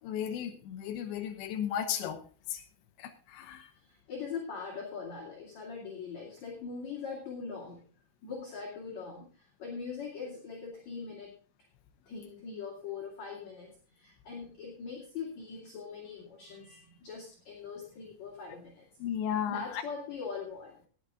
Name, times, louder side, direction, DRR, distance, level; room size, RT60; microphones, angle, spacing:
voice 1, 0.0-2.2 2.5-2.6 3.0-3.7 19.0-19.8, left 9 dB, 90° left, 7 dB, 3.4 m, -34 dB
voice 2, 3.8-7.9 8.2-11.3 12.1-18.9 19.5-20.8, left 5 dB, 45° left, -2 dB, 3.4 m, -41 dB
18.5 x 8.2 x 3.7 m, 0.38 s
omnidirectional pair, 4.9 m